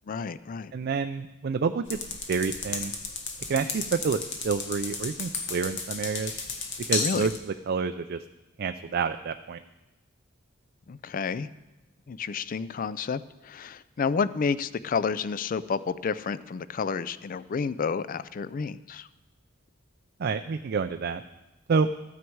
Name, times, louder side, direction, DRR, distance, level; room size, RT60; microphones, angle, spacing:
voice 1, 0.1-0.7 6.9-7.3 10.9-11.5 12.1-19.1, left 5 dB, 45° left, 16 dB, 0.4 m, -30 dB
voice 2, 0.7-2.0 2.3-2.9 3.5-6.3 6.9-8.2 8.6-9.6 20.2-21.2 21.7-21.9, right 5 dB, 50° right, 8 dB, 0.4 m, -28 dB
sound 1, 1.9-7.4, left 4 dB, 65° left, 1.4 m, -34 dB
14.0 x 9.4 x 4.6 m, 1.0 s
head